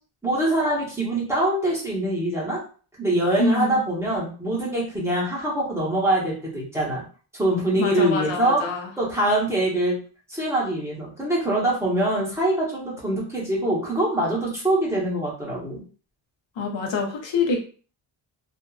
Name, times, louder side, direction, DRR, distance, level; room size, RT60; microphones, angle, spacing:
voice 1, 0.2-2.6 3.0-7.0 7.4-8.6 9.0-10.0 10.3-15.8, right 1 dB, 5° right, -6 dB, 0.8 m, -24 dB
voice 2, 3.4-3.8 7.8-8.9 16.6-17.6, left 3 dB, 60° left, 2 dB, 0.8 m, -25 dB
2.6 x 2.3 x 2.3 m, 0.39 s
wide cardioid pair, 165°, 50 cm